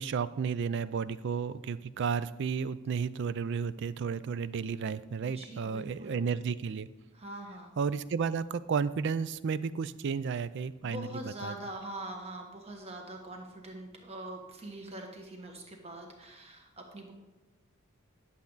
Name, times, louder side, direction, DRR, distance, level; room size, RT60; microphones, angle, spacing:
voice 1, 0.0-6.9 7.8-11.5, right 6 dB, 55° right, 16 dB, 0.3 m, -32 dB
voice 2, 5.2-6.2 7.1-7.7 10.8-17.1, right 1 dB, 30° right, 2 dB, 1.4 m, -43 dB
10.5 x 7.2 x 4.0 m, 1.2 s
head